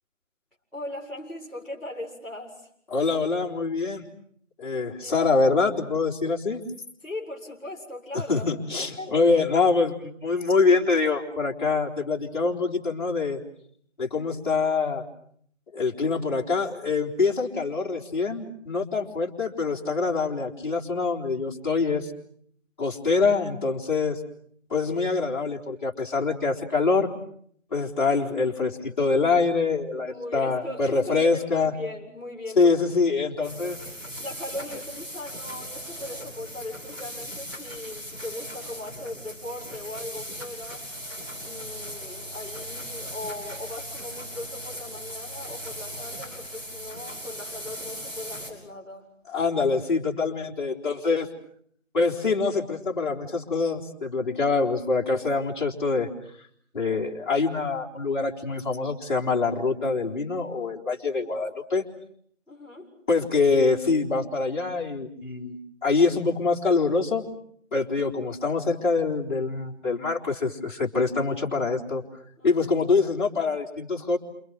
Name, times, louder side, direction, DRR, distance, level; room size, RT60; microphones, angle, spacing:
voice 1, 0.7-2.7 4.7-5.2 7.0-8.4 8.8-9.2 27.7-28.1 30.1-32.7 34.2-40.8 41.4-49.1 62.5-62.9 72.4-72.7, left 1 dB, ahead, -16 dB, 4.6 m, -39 dB
voice 2, 2.9-4.0 4.6-6.6 8.3-13.4 14.0-15.0 15.7-22.1 22.8-24.2 24.7-27.1 27.7-31.7 32.6-33.8 49.3-51.3 51.9-56.1 56.7-61.8 63.1-67.2 67.7-72.0 72.4-74.2, left 4 dB, 40° left, -3 dB, 4.1 m, -25 dB
sound 1, 33.4-48.5, equal, 15° right, 6.5 m, -38 dB
30.0 x 28.0 x 6.3 m, 0.65 s
figure-of-eight pair, 165°, 38 cm